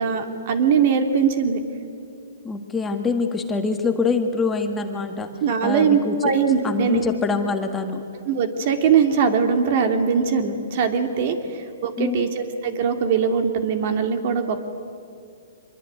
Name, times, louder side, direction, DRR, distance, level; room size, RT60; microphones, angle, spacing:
voice 1, 0.0-1.6 5.4-7.1 8.3-14.6, right 6 dB, 45° right, 7 dB, 2.7 m, -21 dB
voice 2, 2.4-5.3 5.6-6.1 6.6-8.0 12.0-12.3, left 4 dB, 10° left, 5 dB, 1.6 m, -24 dB
25.0 x 22.5 x 9.5 m, 2.4 s
hypercardioid pair, 150°, 0 cm